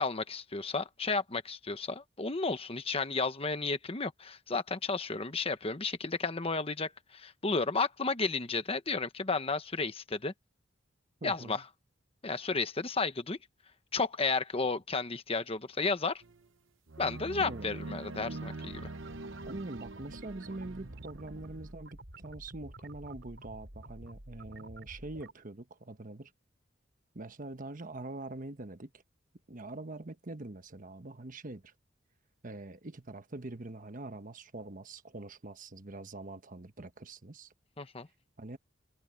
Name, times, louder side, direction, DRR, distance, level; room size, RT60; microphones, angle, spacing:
voice 1, 0.0-10.3 11.2-11.6 12.2-13.4 13.9-16.2 17.0-18.9 37.8-38.1, left 4 dB, 30° left, 1.1 m, -32 dB
voice 2, 11.2-11.6 17.4-17.7 19.5-26.3 27.1-28.9 29.5-31.7 32.4-37.5 38.4-38.6, right 2 dB, 45° right, 1.1 m, -44 dB
sound 1, 16.2-16.4 16.9-21.7, right 2 dB, 90° right, 1.0 m, -44 dB
sound 2, 18.2-25.3, right 1 dB, 65° right, 4.6 m, -50 dB
head